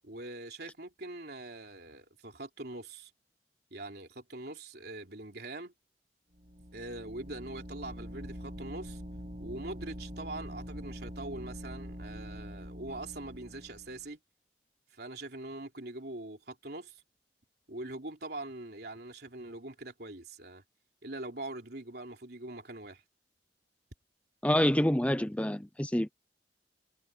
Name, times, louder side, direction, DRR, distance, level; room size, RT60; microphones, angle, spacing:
voice 1, 0.0-3.1 3.7-5.7 6.7-9.0 9.4-14.2 14.9-17.0 17.7-20.6 21.0-23.0, right 2 dB, 60° right, 3.5 m, -43 dB
sound 1, 6.3-14.1, equal, 40° right, 6.0 m, -44 dB
voice 2, 24.4-26.1, left 1 dB, 10° left, 0.6 m, -27 dB
head